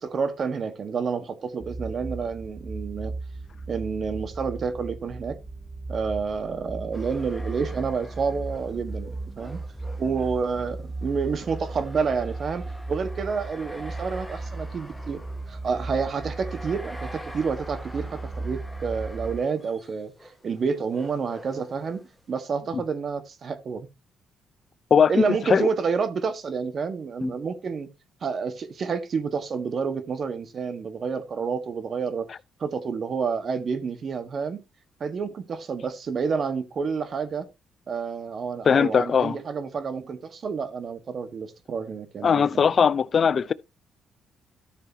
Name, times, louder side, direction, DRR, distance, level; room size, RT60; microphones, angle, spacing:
voice 1, 0.0-3.1 3.7-5.4 5.9-9.6 10.0-15.2 15.5-20.1 20.4-23.9 25.1-27.9 28.2-32.3 32.6-34.6 35.0-37.5 37.9-42.7, right 5 dB, 50° right, 1.5 m, -29 dB
sound 1, 1.6-19.4, right 2 dB, 25° right, 1.4 m, -36 dB
sound 2, 6.9-22.3, equal, ahead, 1.5 m, -46 dB
voice 2, 38.7-39.4 42.2-43.5, left 6 dB, 45° left, 0.5 m, -19 dB
13.0 x 6.7 x 2.9 m
cardioid pair, 90°, 0 cm